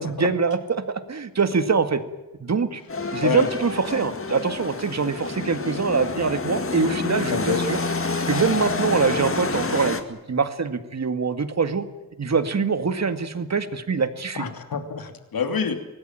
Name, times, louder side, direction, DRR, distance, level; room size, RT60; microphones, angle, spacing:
voice 1, 0.0-2.0 2.4-2.8 3.1-7.8 8.3-11.8 12.2-14.4, right 5 dB, 50° right, 9 dB, 2.1 m, -24 dB
sound 1, 2.9-10.0, left 3 dB, 35° left, 2.2 m, -28 dB
voice 2, 7.3-7.6 14.4-15.8, left 6 dB, 75° left, 7 dB, 2.9 m, -26 dB
25.0 x 19.0 x 9.1 m, 1.0 s
wide cardioid pair, 120°, 36 cm